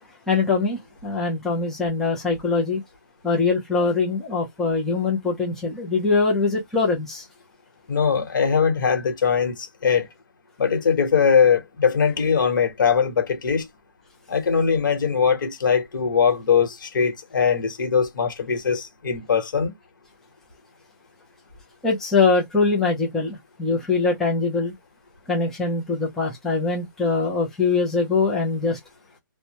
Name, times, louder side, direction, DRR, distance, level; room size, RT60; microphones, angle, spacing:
voice 1, 0.3-2.8 3.2-7.2 21.8-24.7 25.3-28.8, left 4 dB, 5° left, 0.4 m, -22 dB
voice 2, 7.9-10.1 10.6-13.7 14.3-19.7, left 6 dB, 70° left, 1.1 m, -21 dB
2.1 x 2.0 x 2.8 m
hypercardioid pair, 160°, 11 cm